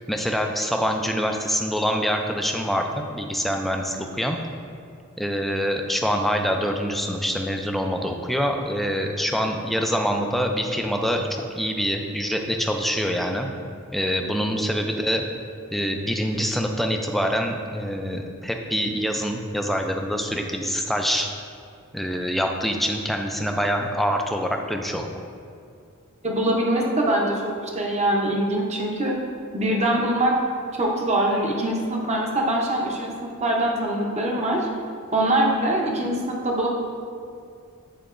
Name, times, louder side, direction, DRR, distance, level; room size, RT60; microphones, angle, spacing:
voice 1, 0.1-4.4 5.2-13.5 13.9-15.2 15.7-21.3 21.9-25.1, equal, ahead, 3 dB, 0.3 m, -25 dB
voice 2, 26.2-29.2 29.5-30.3 30.7-33.1 33.4-34.7 35.1-36.7, right 1 dB, 30° right, -1 dB, 0.7 m, -23 dB
8.7 x 4.5 x 2.5 m, 2.3 s
head